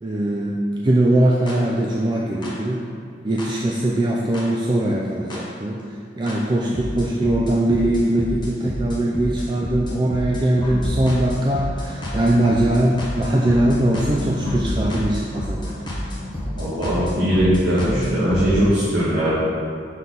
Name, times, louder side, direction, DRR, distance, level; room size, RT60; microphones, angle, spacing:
voice 1, 0.0-2.8 3.2-5.8 6.2-15.7, right 1 dB, 25° right, -2 dB, 0.4 m, -21 dB
sound 1, 1.5-1.6 2.4-2.5 3.4-3.5 4.3-4.4 5.3-5.4 6.3-6.4 6.7-18.5, left 1 dB, 25° left, 1.1 m, -28 dB
voice 2, 16.5-19.3, equal, 60° right, -10 dB, 1.5 m, -20 dB
6.2 x 5.6 x 4.0 m, 2.4 s
head